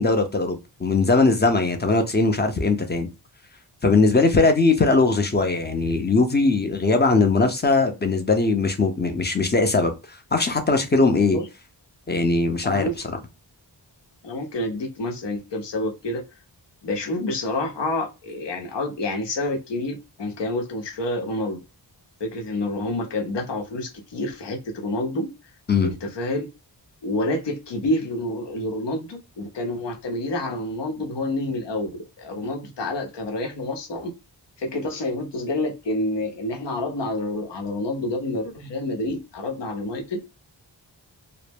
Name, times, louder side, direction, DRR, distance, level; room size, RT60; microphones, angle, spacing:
voice 1, 0.0-3.1 3.8-11.4 12.1-12.9 25.7-25.9, left 3 dB, 25° left, 0.6 m, -20 dB
voice 2, 12.6-13.0 14.2-16.2 16.8-21.6 22.2-25.3 25.8-26.5 27.0-34.1 34.6-40.2, left 1 dB, 70° left, 0.8 m, -28 dB
2.1 x 2.0 x 3.3 m
cardioid pair, 45°, 43 cm